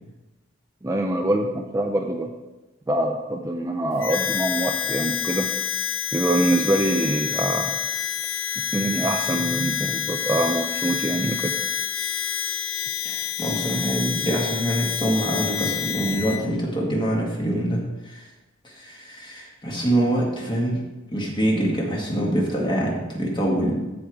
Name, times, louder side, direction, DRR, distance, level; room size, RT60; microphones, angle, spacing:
voice 1, 0.8-2.3 2.9-5.5 6.1-7.8 8.7-11.5, right 1 dB, 15° right, 3 dB, 0.5 m, -24 dB
Harmonica, 4.0-16.4, left 8 dB, 80° left, 0.7 m, -28 dB
voice 2, 13.0-18.3 18.6-20.8 21.1-23.9, right 1 dB, 25° left, -2 dB, 1.9 m, -25 dB
14.0 x 4.9 x 3.6 m, 1.1 s
head